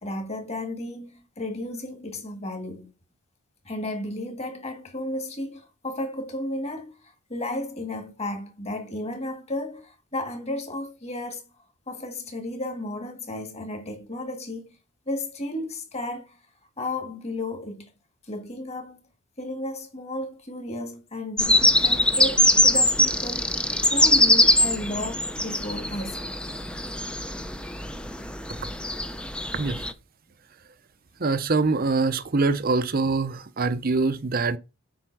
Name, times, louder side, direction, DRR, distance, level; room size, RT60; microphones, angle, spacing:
voice 1, 0.0-2.9 3.7-11.4 11.9-14.7 15.1-16.4 16.8-17.9 18.3-19.0 19.4-23.5 23.9-26.3, left 1 dB, 30° left, 2.0 m, -33 dB
sound 1, 21.4-29.9, left 1 dB, 5° left, 0.6 m, -22 dB
voice 2, 29.5-29.9 31.2-34.6, right 3 dB, 45° right, 0.7 m, -24 dB
7.8 x 4.9 x 6.1 m
head